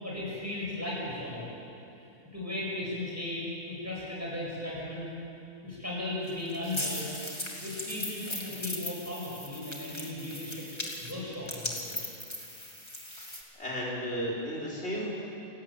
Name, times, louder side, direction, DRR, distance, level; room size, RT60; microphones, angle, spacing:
voice 1, 0.0-1.5 2.3-5.1 5.6-7.1 7.6-10.6 11.0-12.0, left 1 dB, 10° right, -5 dB, 7.5 m, -36 dB
sound 1, 6.3-13.4, left 1 dB, 20° left, 2.6 m, -38 dB
voice 2, 13.6-15.1, equal, 50° left, -4 dB, 5.1 m, -34 dB
29.0 x 16.0 x 9.0 m, 2.7 s
omnidirectional pair, 1.4 m